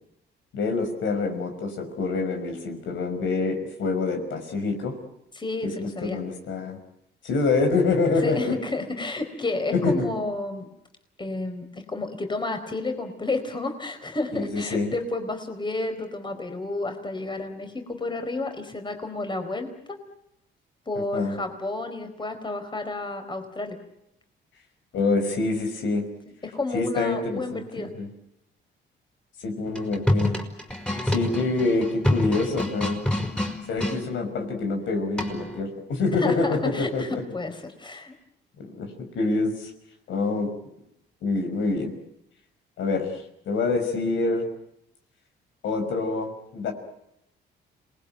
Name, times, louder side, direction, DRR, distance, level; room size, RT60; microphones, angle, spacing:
voice 1, 0.5-4.9 5.6-6.8 7.2-8.6 9.8-10.1 14.3-14.9 21.1-21.3 24.9-26.0 26.7-27.6 28.0-28.1 29.4-30.4 31.1-33.0 33.7-37.2 38.6-38.9 39.1-39.7 40.1-40.5 41.2-41.9 42.8-44.5 45.6-46.7, left 3 dB, 75° left, 5 dB, 5.8 m, -26 dB
voice 2, 5.3-6.2 8.2-10.7 11.2-19.7 20.9-23.8 26.4-27.9 31.1-31.2 36.1-38.1, left 2 dB, 25° left, 6 dB, 4.4 m, -31 dB
sound 1, 29.7-34.0 35.2-35.6, left 1 dB, 5° left, 5.1 m, -27 dB
27.5 x 20.5 x 9.2 m, 0.81 s
cardioid pair, 90°, 20 cm